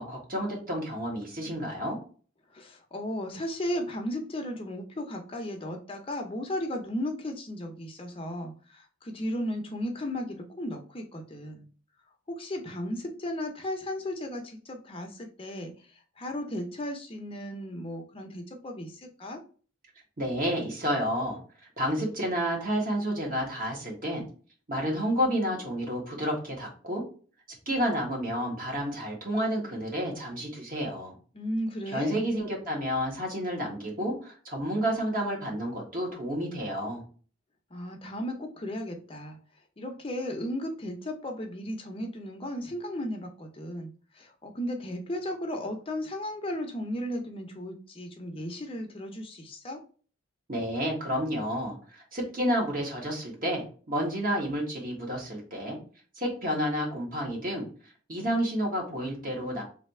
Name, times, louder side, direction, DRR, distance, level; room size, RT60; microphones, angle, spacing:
voice 1, 0.0-2.0 20.2-21.4 21.8-24.2 24.7-27.0 27.7-31.2 31.9-37.0 50.5-55.8 56.2-57.7 58.1-59.6, equal, 45° right, -1 dB, 1.6 m, -30 dB
voice 2, 2.5-11.7 12.3-15.7 16.2-19.4 31.3-32.3 37.7-39.4 39.8-49.8, left 1 dB, 30° left, 4 dB, 0.6 m, -35 dB
3.3 x 2.7 x 4.3 m, 0.39 s
head